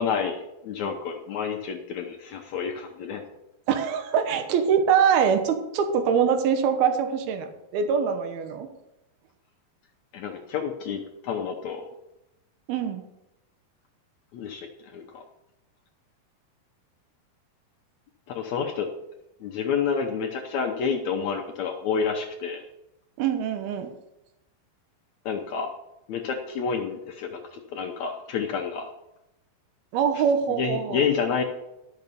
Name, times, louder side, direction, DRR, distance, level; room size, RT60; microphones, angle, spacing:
voice 1, 0.0-3.2 10.1-11.8 14.3-15.2 18.3-18.9 19.4-22.6 25.2-25.7 26.1-28.9 30.6-31.4, left 6 dB, 75° left, 2 dB, 1.7 m, -29 dB
voice 2, 3.7-8.7 12.7-13.0 23.2-23.9 29.9-31.0, right 7 dB, 85° right, 7 dB, 3.0 m, -23 dB
12.5 x 6.6 x 6.8 m, 0.90 s
omnidirectional pair, 4.3 m